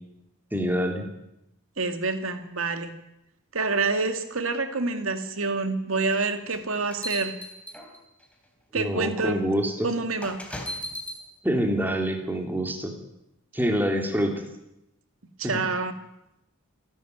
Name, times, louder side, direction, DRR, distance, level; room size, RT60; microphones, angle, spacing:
voice 1, 0.5-1.1 8.7-9.9 11.4-12.9 13.5-14.3 15.4-15.6, equal, 10° right, 3 dB, 3.0 m, -26 dB
voice 2, 1.8-2.9 3.5-7.4 8.7-9.4 9.8-10.4 15.4-15.9, right 3 dB, 70° right, 8 dB, 2.3 m, -27 dB
sound 1, 6.5-8.2 9.0-9.2 10.2-11.2, left 1 dB, 5° left, 3.4 m, -36 dB
27.5 x 12.0 x 9.5 m, 0.88 s
head